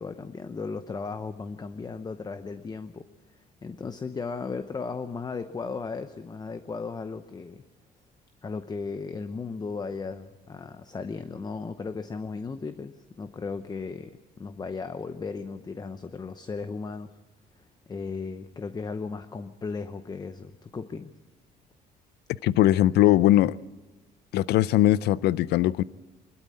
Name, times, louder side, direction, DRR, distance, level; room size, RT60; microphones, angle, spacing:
voice 1, 0.0-7.6 8.4-17.2 17.9-21.1, left 4 dB, 25° left, 0.8 m, -36 dB
voice 2, 22.4-23.6 24.3-25.8, left 14 dB, 75° left, 0.5 m, -20 dB
24.0 x 12.5 x 8.6 m
cardioid pair, 110°, 17 cm